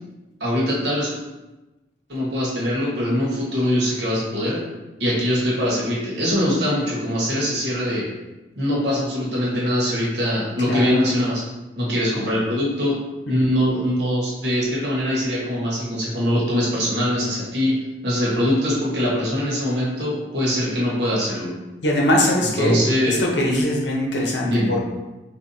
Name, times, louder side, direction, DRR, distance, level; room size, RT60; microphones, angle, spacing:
voice 1, 0.4-1.2 2.1-4.6 5.0-8.1 8.6-11.4 11.8-13.0 13.3-17.8 18.0-21.5 22.6-23.2 24.4-24.8, equal, 75° right, -5 dB, 1.2 m, -22 dB
voice 2, 10.7-11.0 21.8-24.8, left 1 dB, 85° left, -1 dB, 0.9 m, -21 dB
4.4 x 2.7 x 2.7 m, 1.1 s
head